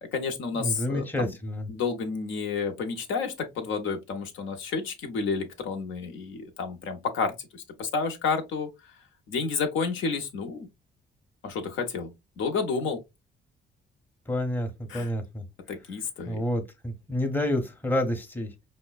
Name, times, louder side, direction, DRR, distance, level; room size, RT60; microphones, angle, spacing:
voice 1, 0.0-1.3 1.7-8.7 9.3-10.7 11.4-12.1 12.4-13.0 14.9-15.1 15.7-16.4, left 5 dB, 80° left, 0.8 m, -30 dB
voice 2, 0.5-1.7 14.3-15.4 16.3-18.5, left 1 dB, 10° left, 0.8 m, -29 dB
5.2 x 2.1 x 2.2 m
cardioid pair, 90°, 20 cm